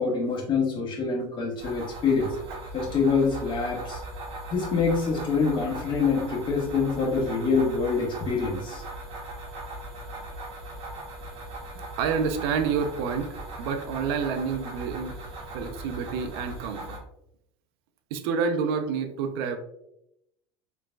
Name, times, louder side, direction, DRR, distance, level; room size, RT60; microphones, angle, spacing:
voice 1, 0.0-2.3 2.7-4.0 4.5-8.8, left 5 dB, 40° left, 0 dB, 1.4 m, -25 dB
sound 1, 1.6-17.0, right 1 dB, 50° right, 1.5 m, -39 dB
voice 2, 12.0-15.2 15.5-17.0 18.1-19.6, right 6 dB, 80° right, 7 dB, 0.6 m, -28 dB
5.0 x 3.2 x 2.3 m, 0.80 s
supercardioid pair, 110°, 13 cm